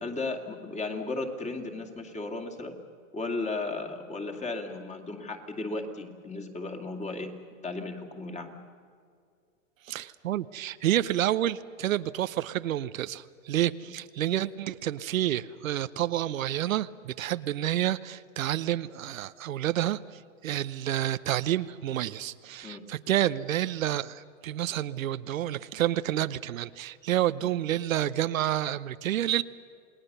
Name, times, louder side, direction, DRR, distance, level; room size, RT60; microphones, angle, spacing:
voice 1, 0.0-2.8 3.1-8.6 22.6-22.8 27.4-27.5, left 3 dB, 20° left, 4 dB, 2.5 m, -35 dB
voice 2, 9.9-20.0 20.4-29.4, right 12 dB, 80° right, 14 dB, 0.8 m, -29 dB
28.5 x 19.5 x 6.8 m, 2.2 s
hypercardioid pair, 125°, 39 cm